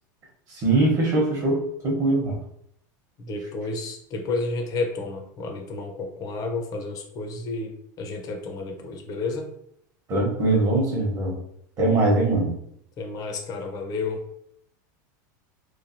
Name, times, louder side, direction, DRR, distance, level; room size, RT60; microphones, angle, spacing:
voice 1, 0.5-2.4 10.1-11.4 11.8-12.5, right 2 dB, 35° right, -2 dB, 0.9 m, -22 dB
voice 2, 3.2-7.7 8.0-9.5 13.0-14.2, left 3 dB, 35° left, 4 dB, 0.7 m, -31 dB
3.1 x 2.3 x 2.6 m, 0.72 s
supercardioid pair, 125°, 10 cm